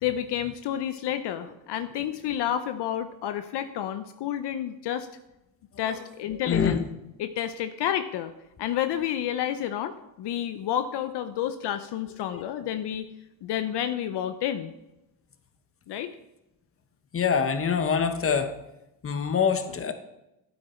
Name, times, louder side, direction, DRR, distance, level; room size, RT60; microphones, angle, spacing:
voice 1, 0.0-5.1 5.8-6.8 7.2-8.3 8.6-13.1 13.4-14.7 15.9-16.1, left 10 dB, 65° left, 10 dB, 0.8 m, -30 dB
voice 2, 6.3-6.8 12.3-12.4 17.1-18.5 19.0-19.9, left 6 dB, 30° left, 8 dB, 1.2 m, -25 dB
12.5 x 8.8 x 4.5 m, 0.90 s
cardioid pair, 95°, 45 cm